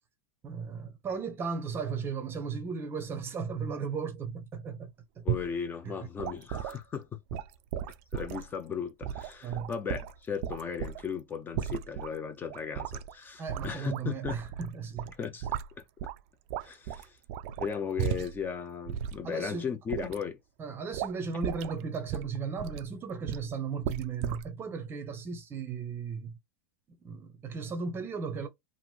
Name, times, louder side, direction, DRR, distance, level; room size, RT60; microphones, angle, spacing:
voice 1, 0.4-4.9 5.2-5.3 5.8-6.0 9.4-9.7 13.4-15.1 19.2-19.7 20.6-26.3 26.9-28.5, right 5 dB, 20° right, 0.7 m, -36 dB
voice 2, 5.2-7.4 8.1-14.4 15.2-15.5 16.6-17.2 17.6-20.4, left 7 dB, 20° left, 0.6 m, -36 dB
sound 1, 5.3-5.6 6.2-6.8 7.3-8.5 9.0-11.1 11.5-12.1 12.5-13.1 13.5-14.7 15.0-16.2 16.5-18.5 18.9-19.2 19.9-20.2 20.9-21.2 21.4-21.8 22.1-22.9 23.3-23.5 23.8-24.5, right 10 dB, 50° right, 0.4 m, -35 dB
3.0 x 2.5 x 2.3 m
supercardioid pair, 140°, 10 cm